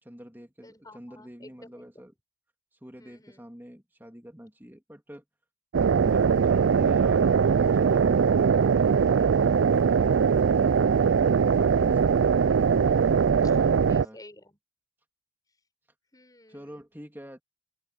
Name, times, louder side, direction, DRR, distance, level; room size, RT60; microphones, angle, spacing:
voice 1, 0.0-2.1 2.8-5.2 5.9-12.2 13.4-14.2 16.5-17.4, equal, 10° right, 3.1 m, -47 dB
voice 2, 0.6-1.8 3.0-3.5 12.7-14.6 16.1-16.8, left 1 dB, 20° left, 5.6 m, -53 dB
sound 1, 5.7-14.0, right 6 dB, 75° right, 0.4 m, -21 dB
open air
head